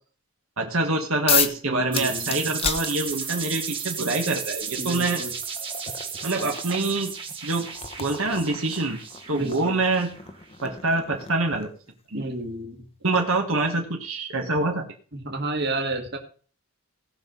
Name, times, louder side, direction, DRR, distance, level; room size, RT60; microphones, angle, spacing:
voice 1, 0.6-5.2 6.2-7.1 7.4-7.7 8.0-9.0 9.3-10.1 10.6-11.7 12.1-12.2 13.0-14.8, right 2 dB, 70° right, 2 dB, 1.8 m, -25 dB
sound 1, 1.3-1.6 1.9-3.5 4.6-4.7 5.2-11.9, left 7 dB, 25° left, 0.9 m, -32 dB
voice 2, 1.7-2.4 4.8-5.3 9.3-9.8 12.1-12.8 15.1-16.2, right 2 dB, 50° right, 3 dB, 2.0 m, -31 dB
sound 2, 1.9-10.4, right 6 dB, 25° right, 2.0 m, -34 dB
18.0 x 6.1 x 5.4 m, 0.42 s
head